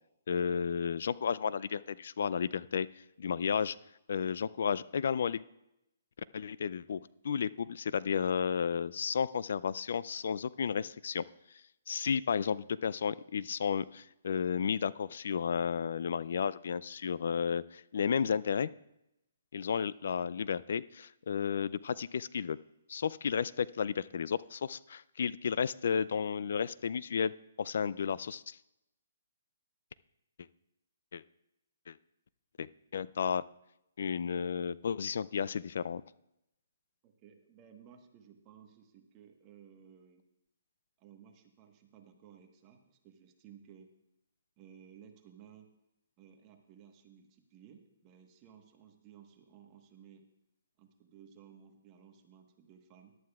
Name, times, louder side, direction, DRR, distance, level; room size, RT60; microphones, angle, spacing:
voice 1, 0.3-2.9 3.2-3.8 4.1-5.4 6.3-11.2 11.9-18.7 19.5-22.6 22.9-27.3 27.6-28.6 31.1-31.2 31.9-32.0 32.6-33.4 34.0-36.0, left 7 dB, 65° left, 18 dB, 0.3 m, -32 dB
voice 2, 37.0-40.2 41.0-43.9 44.6-45.7 46.2-50.3 50.8-53.2, right 8 dB, 25° right, 4 dB, 1.2 m, -57 dB
17.5 x 11.5 x 2.4 m, 0.86 s
hypercardioid pair, 150°, 0 cm